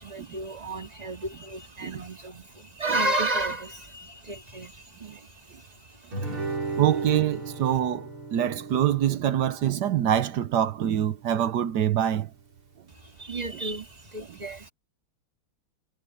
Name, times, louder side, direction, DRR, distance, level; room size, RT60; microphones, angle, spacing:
voice 1, 0.0-6.5 13.0-14.7, right 2 dB, 20° right, 2.0 m, -33 dB
Guitar, 6.1-11.2, right 3 dB, 90° right, 7.8 m, -36 dB
voice 2, 6.8-12.3, right 10 dB, 65° right, 1.2 m, -25 dB
omnidirectional pair, 2.3 m